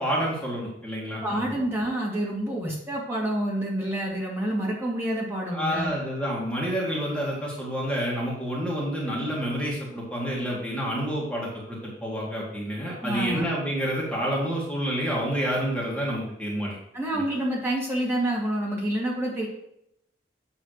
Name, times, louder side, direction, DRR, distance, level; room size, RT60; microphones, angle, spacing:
voice 1, 0.0-1.5 5.5-16.8 17.1-17.2, equal, 5° left, -5 dB, 1.7 m, -29 dB
voice 2, 1.2-5.9 13.0-13.5 16.9-19.5, right 1 dB, 15° right, -4 dB, 1.9 m, -28 dB
8.9 x 3.3 x 6.5 m, 0.78 s
head